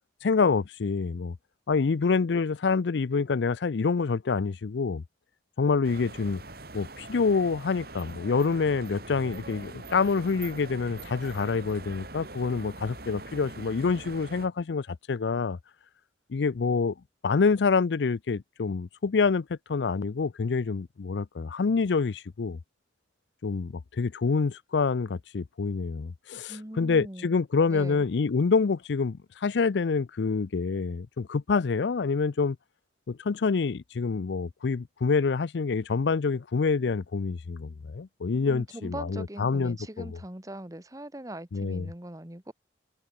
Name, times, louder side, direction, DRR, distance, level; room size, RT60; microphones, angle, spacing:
voice 1, 0.2-1.4 1.7-5.0 5.6-6.4 6.7-15.6 16.3-16.9 17.2-22.6 23.4-32.6 33.1-40.1 41.5-41.9, left 4 dB, 75° left, 0.5 m, -27 dB
sound 1, 5.8-14.5, right 2 dB, 55° right, 4.8 m, -43 dB
voice 2, 26.5-27.4 27.7-28.0 38.5-42.5, right 1 dB, 20° right, 1.5 m, -41 dB
head